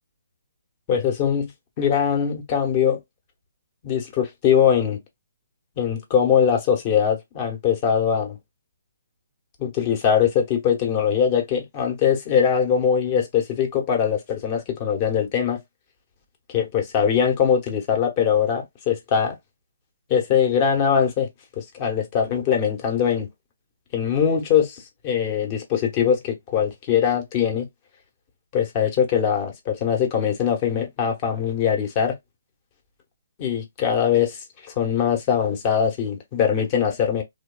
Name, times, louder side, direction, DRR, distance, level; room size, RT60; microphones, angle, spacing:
voice 1, 0.9-1.5 1.8-3.0 3.8-5.0 5.8-8.4 9.6-15.6 16.5-19.4 20.1-21.3 21.6-23.3 23.9-27.7 28.5-32.1 33.4-34.4 34.6-37.2, left 8 dB, 30° left, 0.9 m, -22 dB
3.1 x 2.2 x 2.2 m
figure-of-eight pair, 140°, 0 cm